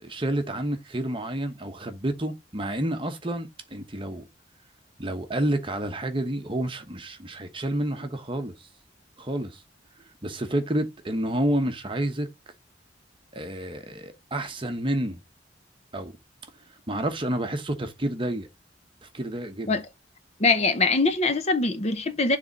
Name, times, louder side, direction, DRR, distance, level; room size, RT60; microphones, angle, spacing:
voice 1, 0.0-4.3 5.0-8.7 9.2-9.6 10.0-12.3 13.3-15.2 15.9-16.1 16.9-18.5 19.0-19.8, right 1 dB, 25° right, 1.1 m, -29 dB
voice 2, 20.4-22.4, left 3 dB, 35° left, 0.8 m, -23 dB
7.0 x 3.5 x 5.2 m
head